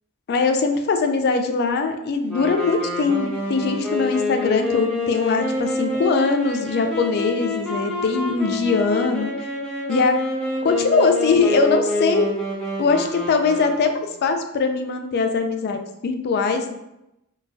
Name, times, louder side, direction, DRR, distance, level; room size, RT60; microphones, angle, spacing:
voice 1, 0.3-9.3 9.9-10.2 10.6-12.3 12.8-16.7, left 4 dB, 50° left, 6 dB, 0.3 m, -21 dB
sound 1, 2.3-14.1, left 2 dB, 5° left, 0.6 m, -27 dB
3.7 x 2.2 x 2.5 m, 0.87 s
head